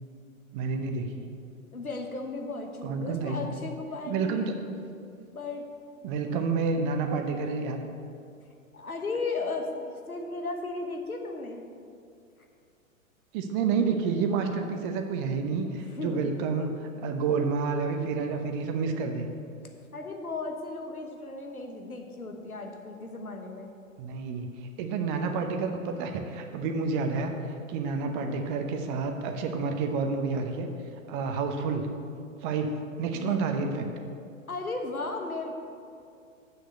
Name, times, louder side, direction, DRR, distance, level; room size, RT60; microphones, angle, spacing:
voice 1, 0.5-1.3 2.8-3.5 4.1-4.5 6.0-7.8 13.3-19.3 24.0-24.5 24.8-27.3 27.7-30.7 31.1-31.9 32.4-33.9, right 4 dB, 35° right, 5 dB, 0.9 m, -29 dB
voice 2, 1.7-4.6 5.3-5.6 8.7-11.6 15.7-16.3 19.9-23.7 33.1-33.8 34.5-35.5, left 3 dB, 90° left, 3 dB, 1.3 m, -35 dB
7.8 x 6.6 x 6.7 m, 2.4 s
figure-of-eight pair, 110°, 42 cm